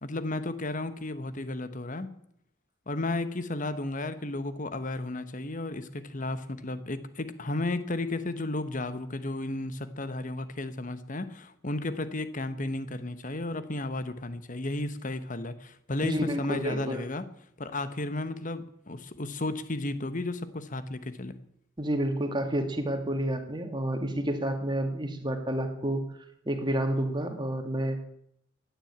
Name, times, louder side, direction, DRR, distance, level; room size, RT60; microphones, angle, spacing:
voice 1, 0.0-2.1 2.9-17.2 17.6-21.3, left 2 dB, 40° left, 12 dB, 1.2 m, -33 dB
voice 2, 16.0-17.0 21.8-26.0 26.5-28.0, right 1 dB, 20° right, 6 dB, 2.1 m, -29 dB
15.5 x 10.5 x 8.8 m, 0.73 s
head